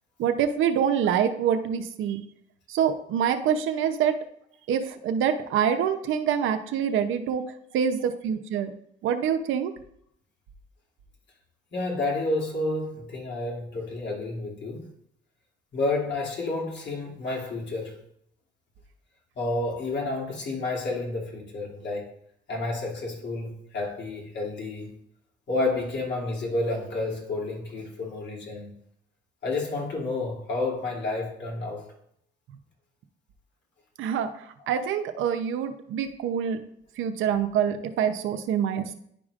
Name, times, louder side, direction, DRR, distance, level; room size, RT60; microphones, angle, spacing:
voice 1, 0.2-2.2 2.7-4.2 4.7-7.4 7.7-8.7 9.0-9.7 34.0-34.3 34.7-36.6 37.0-38.9, right 8 dB, 85° right, 8 dB, 0.7 m, -25 dB
voice 2, 11.7-14.9 15.7-18.0 19.4-22.1 22.5-25.0 25.5-28.7 29.4-31.9, left 2 dB, 60° left, -3 dB, 2.5 m, -30 dB
10.5 x 4.9 x 2.4 m, 0.70 s
cardioid pair, 90°, 20 cm